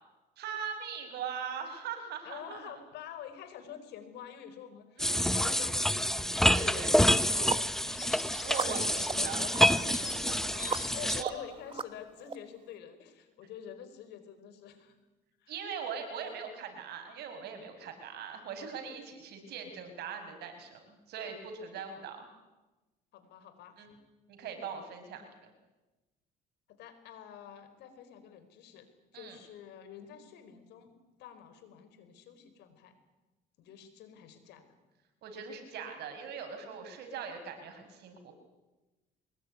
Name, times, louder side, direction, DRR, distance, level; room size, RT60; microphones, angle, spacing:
voice 1, 0.4-2.8 5.0-5.4 6.5-6.9 8.4-10.4 10.8-11.3 15.5-22.3 23.8-23.9 24.3-25.5 29.1-29.4 35.2-38.3, right 6 dB, 75° right, 6 dB, 5.9 m, -41 dB
voice 2, 2.2-8.3 8.6-8.9 9.2-9.5 10.3-14.9 15.4-16.0 21.7-21.8 23.1-24.0 26.7-28.9 29.1-32.9 33.6-34.7, left 9 dB, 80° left, 10 dB, 4.2 m, -48 dB
sound 1, 5.0-11.2, left 1 dB, ahead, 0.7 m, -27 dB
sound 2, 5.6-11.2, left 3 dB, 20° left, 4.9 m, -46 dB
sound 3, 6.4-6.5 7.0-12.4, right 5 dB, 30° right, 1.4 m, -38 dB
23.5 x 20.5 x 9.7 m, 1.1 s
cardioid pair, 110°, 17 cm